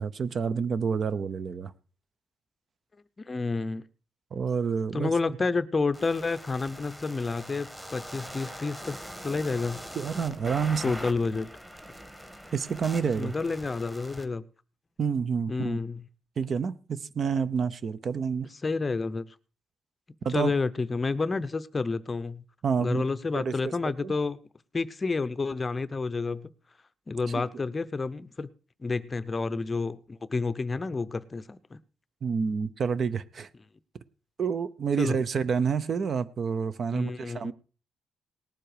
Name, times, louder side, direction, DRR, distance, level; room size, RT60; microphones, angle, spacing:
voice 1, 0.0-1.7 4.3-5.1 9.9-10.9 12.5-13.3 15.0-15.8 16.4-18.5 20.2-20.5 22.6-23.0 23.3-23.7 24.0-24.1 27.3-27.4 32.2-33.5 34.4-37.5, right 6 dB, 45° right, 0.7 m, -28 dB
voice 2, 3.2-3.8 4.9-9.0 9.2-9.8 10.8-11.5 13.2-14.4 15.5-16.0 18.6-19.2 20.3-22.4 22.8-24.4 24.7-26.5 27.1-28.5 28.8-31.8 35.0-35.2 36.9-37.5, left 4 dB, 25° left, 0.7 m, -29 dB
sound 1, 5.9-14.2, equal, 5° right, 1.7 m, -42 dB
19.0 x 7.6 x 4.9 m
cardioid pair, 140°, 0 cm